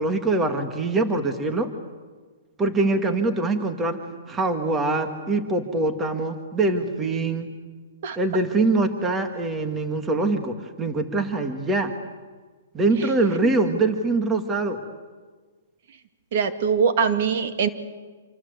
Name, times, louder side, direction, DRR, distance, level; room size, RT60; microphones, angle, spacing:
voice 1, 0.0-1.7 2.6-4.0 4.3-7.5 8.2-11.9 12.7-14.8, right 2 dB, 10° right, 6 dB, 1.9 m, -23 dB
voice 2, 16.3-17.7, right 6 dB, 50° right, 8 dB, 2.0 m, -22 dB
27.0 x 25.0 x 8.2 m, 1.4 s
hypercardioid pair, 160°, 0 cm